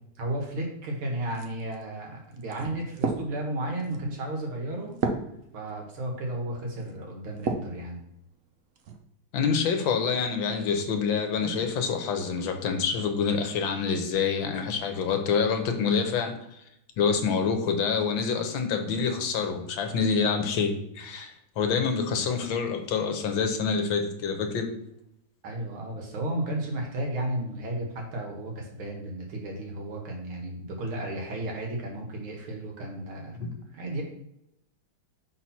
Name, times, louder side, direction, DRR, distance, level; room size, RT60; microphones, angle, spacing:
voice 1, 0.2-5.0 5.5-8.0 25.4-34.0, right 1 dB, 85° right, 0 dB, 2.3 m, -33 dB
sound 1, 1.3-7.8 8.3-9.0, right 4 dB, 70° right, 0.7 m, -35 dB
voice 2, 9.3-16.6 17.0-24.7 33.4-33.5, left 5 dB, 75° left, 5 dB, 1.5 m, -27 dB
5.8 x 4.5 x 4.2 m, 0.79 s
omnidirectional pair, 2.3 m